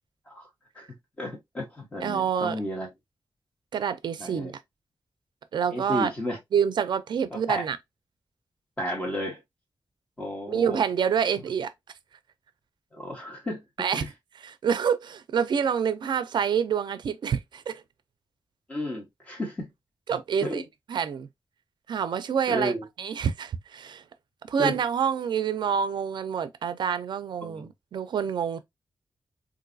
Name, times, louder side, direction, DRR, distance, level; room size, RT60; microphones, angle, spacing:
voice 1, 0.8-2.9 4.2-4.5 5.7-6.4 7.5-7.6 8.8-9.4 10.2-10.8 12.9-13.6 13.9-14.1 18.7-19.7 20.4-20.6 22.5-22.8 24.6-24.7 27.4-27.6, equal, 15° left, 1.6 m, -32 dB
voice 2, 2.0-2.6 3.7-4.6 5.5-6.1 6.5-7.8 10.5-11.7 13.8-14.1 14.4-17.8 20.1-20.6 20.9-21.3 21.9-24.0 24.5-28.6, right 7 dB, 90° right, 0.4 m, -27 dB
3.8 x 2.6 x 2.5 m
wide cardioid pair, 160°, 8 cm